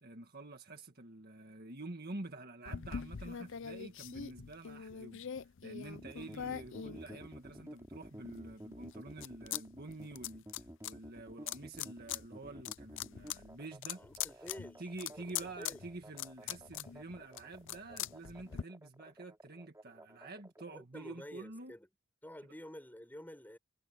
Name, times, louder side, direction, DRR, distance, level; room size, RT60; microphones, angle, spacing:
voice 1, 0.0-14.0 14.3-14.5 14.8-21.7, right 2 dB, 45° right, 1.8 m, -48 dB
sound 1, 2.6-7.7 8.2-9.6 9.9-10.9 11.5-12.2 12.5-18.6, left 9 dB, 60° left, 0.6 m, -43 dB
sound 2, 5.9-20.7, equal, 15° right, 5.0 m, -52 dB
voice 2, 14.0-14.8 15.1-15.8 20.6-21.9 22.2-23.6, equal, 10° left, 6.6 m, -50 dB
head